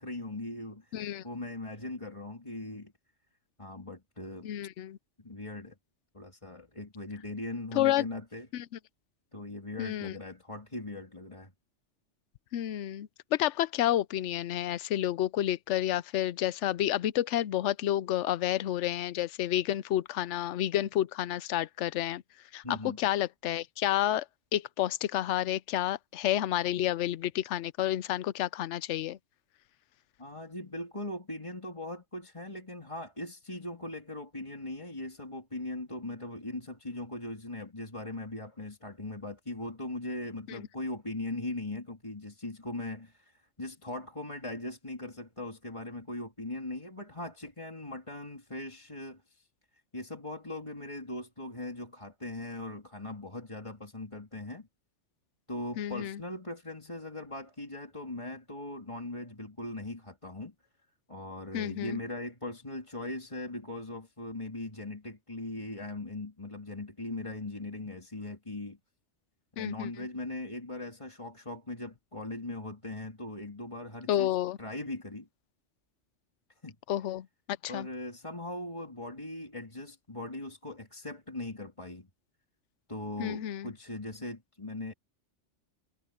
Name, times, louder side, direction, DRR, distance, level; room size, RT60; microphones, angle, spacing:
voice 1, 0.0-2.9 3.6-4.5 5.2-5.7 6.1-8.5 9.3-11.5 22.6-23.0 30.2-49.5 49.9-54.7 55.5-60.5 61.1-68.8 69.6-74.3 74.6-75.3 76.6-76.8 77.7-82.1 82.9-84.9, left 2 dB, 25° left, 3.1 m, -40 dB
voice 2, 0.9-1.2 4.4-5.0 7.7-8.0 8.5-8.6 9.8-10.1 12.5-22.2 22.5-24.3 24.5-29.2 40.5-40.6 55.8-56.2 61.5-62.0 69.6-69.9 74.1-74.6 76.9-77.9 83.2-83.7, left 12 dB, 75° left, 0.9 m, -30 dB
omnidirectional pair, 1.2 m